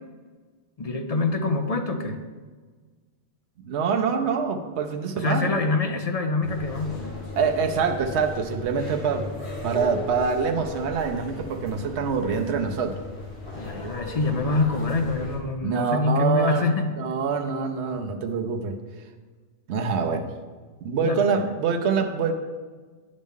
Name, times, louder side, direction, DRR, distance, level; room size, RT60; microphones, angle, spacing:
voice 1, 0.8-2.2 5.2-7.2 13.5-16.9 21.0-21.4, left 3 dB, 45° left, 5 dB, 0.6 m, -25 dB
voice 2, 3.6-5.6 7.4-9.3 9.6-13.0 15.6-16.7 17.0-18.8 19.7-20.3 20.8-22.3, right 5 dB, 80° right, 4 dB, 1.0 m, -25 dB
sound 1, 6.4-15.4, left 2 dB, 70° left, 2.2 m, -37 dB
9.2 x 6.3 x 3.6 m, 1.4 s
omnidirectional pair, 1.1 m